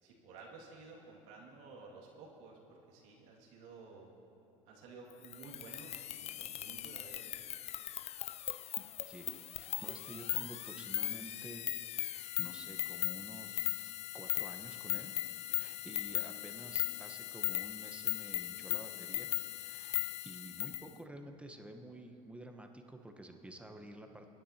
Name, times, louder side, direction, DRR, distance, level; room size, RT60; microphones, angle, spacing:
voice 1, 0.0-4.1 4.7-7.3, right 4 dB, 70° right, -2 dB, 2.3 m, -53 dB
sound 1, 5.2-20.9, left 13 dB, 35° left, 0.4 m, -38 dB
voice 2, 9.1-15.1 15.6-19.3 19.6-20.0 20.2-24.3, right 1 dB, 5° right, 4 dB, 1.1 m, -50 dB
24.5 x 10.0 x 2.9 m, 2.9 s
hypercardioid pair, 85°, 18 cm